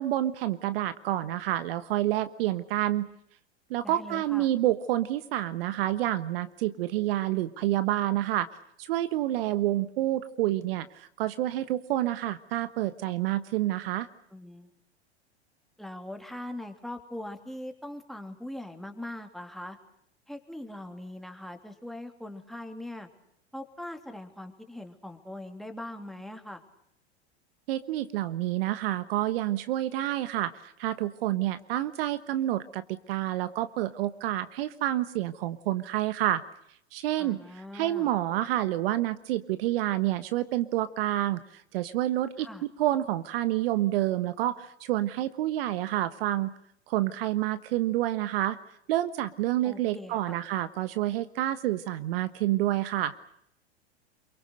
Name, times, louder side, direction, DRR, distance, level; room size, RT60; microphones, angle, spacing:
voice 1, 0.0-3.1 3.7-8.5 8.8-14.1 27.7-36.4 36.9-42.5 42.8-46.5 46.9-48.6 48.9-53.1, right 14 dB, 60° right, 13 dB, 1.3 m, -28 dB
voice 2, 3.8-4.5 14.3-14.7 15.8-19.8 20.3-23.1 23.5-26.6 37.2-38.1 42.4-42.6 49.6-50.4, left 1 dB, ahead, 4 dB, 3.1 m, -41 dB
27.5 x 23.5 x 6.6 m, 0.73 s
hypercardioid pair, 95°, 33 cm